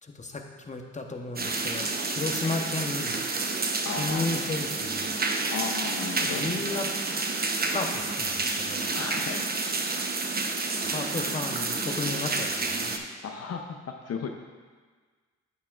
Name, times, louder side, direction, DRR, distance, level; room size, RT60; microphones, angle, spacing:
voice 1, 0.0-3.2 4.0-5.1 6.3-6.9 7.7-8.8 10.8-12.9, left 3 dB, 25° left, 3 dB, 0.9 m, -34 dB
sound 1, 1.4-13.0, right 3 dB, 30° right, 0.8 m, -29 dB
voice 2, 3.8-4.4 5.5-6.5 8.9-9.5 13.2-13.8 14.1-14.3, left 5 dB, 55° left, 3 dB, 0.7 m, -34 dB
8.6 x 8.4 x 2.4 m, 1.5 s
supercardioid pair, 55°, 30 cm